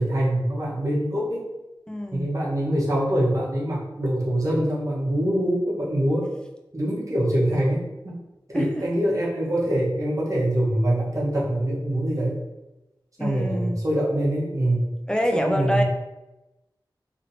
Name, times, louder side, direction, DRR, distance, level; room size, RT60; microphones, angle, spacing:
voice 1, 0.0-1.4 2.1-6.3 6.7-8.2 8.5-12.4 13.2-14.9 15.3-15.8, right 1 dB, 40° right, -6 dB, 1.0 m, -24 dB
voice 2, 1.9-2.3 8.5-8.9 13.2-13.8 15.1-15.8, equal, 10° left, 3 dB, 0.3 m, -26 dB
2.9 x 2.8 x 2.6 m, 1.0 s
wide cardioid pair, 70°, 8 cm